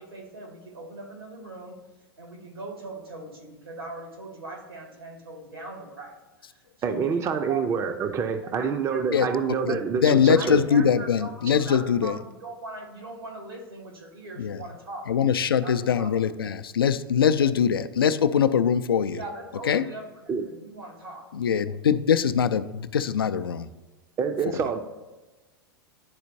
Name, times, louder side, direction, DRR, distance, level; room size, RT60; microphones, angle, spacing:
voice 1, 0.0-1.8 2.2-7.8 8.4-10.0 10.3-15.1 15.6-16.2 19.1-21.3, right 2 dB, 85° right, 0 dB, 2.0 m, -40 dB
voice 2, 6.8-10.6 20.3-20.5 24.2-24.8, right 6 dB, 25° right, 8 dB, 0.5 m, -26 dB
voice 3, 9.7-12.2 14.4-14.6 15.1-19.2 19.7-19.8 21.3-23.7, left 7 dB, 75° left, 12 dB, 0.4 m, -22 dB
11.0 x 4.3 x 2.7 m, 1.1 s
figure-of-eight pair, 90°, 12 cm